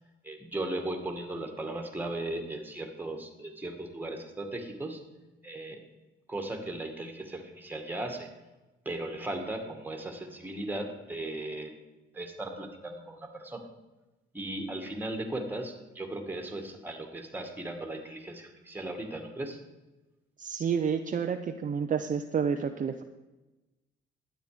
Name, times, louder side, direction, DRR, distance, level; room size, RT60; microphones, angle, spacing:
voice 1, 0.2-5.0 5.4-5.8 6.3-8.3 8.9-11.7 12.1-13.6 14.3-19.6, right 1 dB, 10° right, 4 dB, 2.1 m, -37 dB
voice 2, 20.4-23.0, right 6 dB, 40° right, 6 dB, 0.7 m, -29 dB
12.0 x 9.1 x 5.0 m, 1.1 s
cardioid pair, 90°, 20 cm